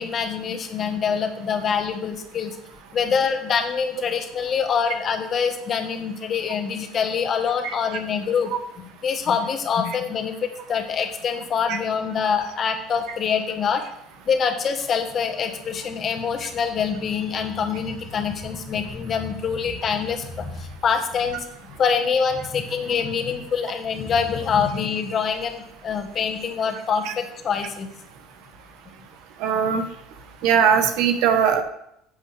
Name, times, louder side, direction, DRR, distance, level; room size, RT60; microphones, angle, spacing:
voice 1, 0.0-2.5 2.9-8.5 9.0-13.8 14.3-27.9, left 6 dB, 40° left, 6 dB, 1.5 m, -25 dB
voice 2, 29.4-29.8 30.4-31.6, right 7 dB, 70° right, 7 dB, 1.3 m, -20 dB
11.0 x 7.5 x 3.5 m, 0.77 s
supercardioid pair, 105°, 0 cm